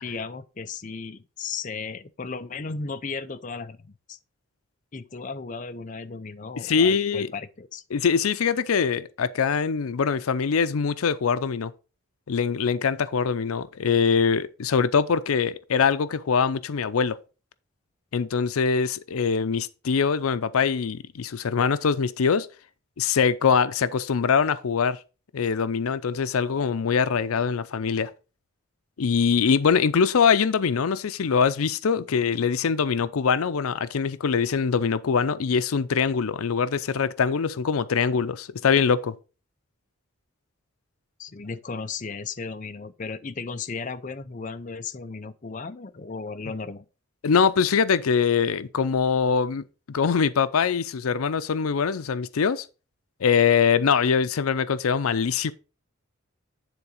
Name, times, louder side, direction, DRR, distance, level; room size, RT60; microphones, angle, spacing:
voice 1, 0.0-4.2 4.9-7.8 41.2-46.9, left 4 dB, 35° left, 0.5 m, -35 dB
voice 2, 6.6-7.3 7.9-11.7 12.3-17.2 18.1-22.5 23.0-25.0 25.3-28.1 29.0-39.1 47.2-52.6 53.2-55.5, left 6 dB, 90° left, 0.5 m, -23 dB
9.8 x 3.9 x 4.9 m
head